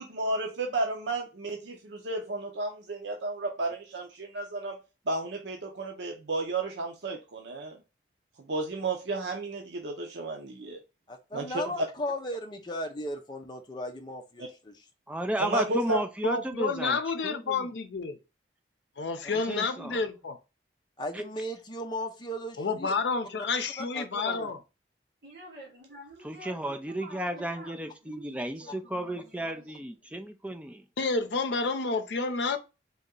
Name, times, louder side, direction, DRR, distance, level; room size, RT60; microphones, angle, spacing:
voice 1, 0.0-4.8 5.1-7.8 8.4-10.8 11.3-11.9 14.4-14.5 15.4-16.0, right 2 dB, 85° right, 0.7 m, -32 dB
voice 2, 11.1-14.7 19.6-19.7 21.0-22.9 23.8-24.5, left 1 dB, 25° left, 0.7 m, -36 dB
voice 3, 15.1-17.7 19.3-20.0 21.1-21.2 26.2-30.8, right 1 dB, 5° right, 0.4 m, -34 dB
voice 4, 16.2-18.2 19.0-20.4 22.6-24.6 31.0-32.6, left 4 dB, 80° left, 0.6 m, -29 dB
voice 5, 25.2-30.1, right 1 dB, 55° right, 1.9 m, -49 dB
4.0 x 2.8 x 3.7 m
head